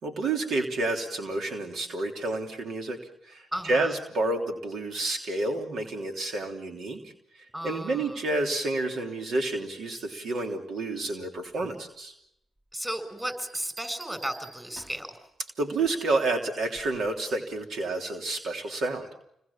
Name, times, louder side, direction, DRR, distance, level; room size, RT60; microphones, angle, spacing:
voice 1, 0.0-12.1 15.6-19.1, right 2 dB, 70° right, 4 dB, 3.3 m, -30 dB
voice 2, 3.5-3.9 7.5-8.2 12.7-15.2, equal, 10° right, 10 dB, 7.2 m, -34 dB
Bell, 13.2-15.1 16.7-17.1, right 3 dB, 35° right, 5.7 m, -46 dB
29.5 x 21.5 x 7.3 m, 0.78 s
supercardioid pair, 55°, 0 cm